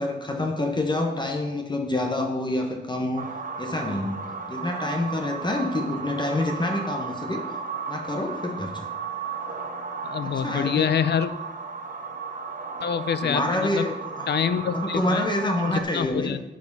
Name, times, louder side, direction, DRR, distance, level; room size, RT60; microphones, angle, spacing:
voice 1, 0.0-3.2 3.6-4.2 4.5-7.4 7.9-8.9 10.2-10.9 13.2-14.3 14.7-16.4, left 1 dB, 25° left, 3 dB, 1.0 m, -27 dB
sound 1, 3.2-15.8, right 5 dB, 50° right, 0.8 m, -34 dB
voice 2, 10.0-11.3 12.8-13.9 14.3-15.3 15.7-16.4, left 8 dB, 70° left, 13 dB, 0.5 m, -26 dB
7.5 x 5.1 x 5.3 m, 1.0 s
wide cardioid pair, 120°, 18 cm